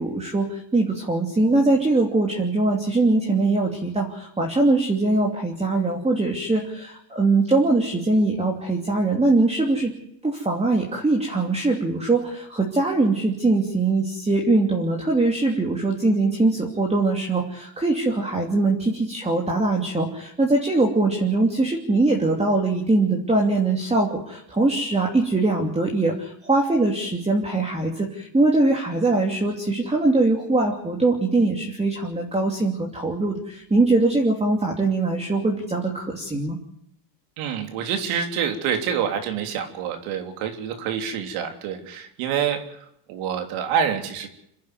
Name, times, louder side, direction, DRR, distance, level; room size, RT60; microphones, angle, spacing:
voice 1, 0.0-9.9 10.2-36.6, right 2 dB, 10° right, 1 dB, 2.9 m, -22 dB
voice 2, 37.4-42.8 43.1-44.3, right 8 dB, 75° right, 5 dB, 3.6 m, -27 dB
27.0 x 10.5 x 9.6 m, 0.75 s
supercardioid pair, 110°, 50 cm